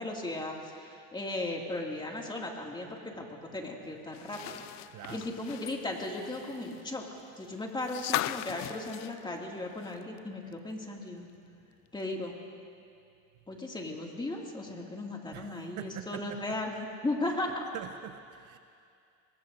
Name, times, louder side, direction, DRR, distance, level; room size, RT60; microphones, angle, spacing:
voice 1, 0.0-4.8 5.1-7.1 7.4-11.3 11.9-12.3 13.5-17.6, left 2 dB, 10° left, 0 dB, 2.3 m, -36 dB
sound 1, 4.1-10.2 10.5-10.6 12.0-12.1, left 15 dB, 45° left, 0.5 m, -39 dB
voice 2, 4.9-5.4 15.3-16.6 17.3-18.6, right 11 dB, 50° right, 9 dB, 0.7 m, -45 dB
25.5 x 21.5 x 2.6 m, 2.4 s
supercardioid pair, 115°, 38 cm